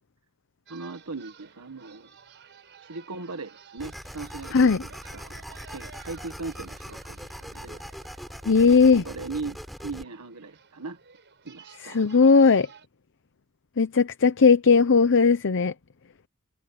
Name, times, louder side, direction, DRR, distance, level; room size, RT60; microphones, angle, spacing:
sound 1, 0.7-12.9, right 6 dB, 55° right, 5.7 m, -53 dB
voice 1, 0.7-2.1 2.8-8.2 8.5-11.0 11.4-12.0, right 3 dB, 85° right, 1.5 m, -39 dB
sound 2, 3.8-10.0, equal, ahead, 4.0 m, -41 dB
voice 2, 4.5-4.8 8.5-9.0 11.9-12.7 13.8-15.7, left 5 dB, 60° left, 0.7 m, -18 dB
head